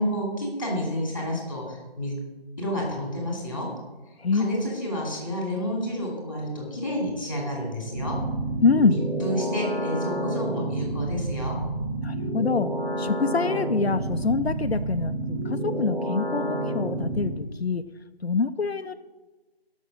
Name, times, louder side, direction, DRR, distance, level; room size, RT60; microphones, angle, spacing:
voice 1, 0.0-2.1 2.6-3.7 4.3-8.2 8.9-11.6, equal, 20° left, -3 dB, 2.8 m, -30 dB
sound 1, 7.9-17.3, right 1 dB, 65° right, 4.3 m, -29 dB
voice 2, 8.6-9.0 12.0-12.7 13.0-17.8 18.2-18.9, left 4 dB, 85° left, 9 dB, 0.7 m, -25 dB
11.0 x 6.2 x 7.4 m, 1.2 s
figure-of-eight pair, 180°, 31 cm